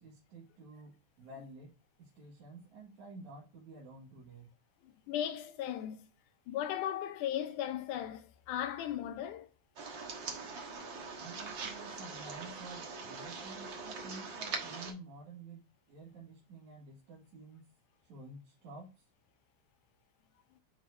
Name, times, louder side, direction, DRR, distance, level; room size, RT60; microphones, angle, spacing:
voice 1, 0.0-1.7 2.0-4.5 11.2-17.6 18.0-19.1, right 2 dB, 70° right, 3.2 m, -51 dB
voice 2, 4.8-6.1 6.5-9.5, left 10 dB, 90° left, 2.4 m, -37 dB
sound 1, 9.8-14.9, right 4 dB, 50° right, 1.7 m, -42 dB
9.1 x 4.4 x 2.6 m
omnidirectional pair, 3.5 m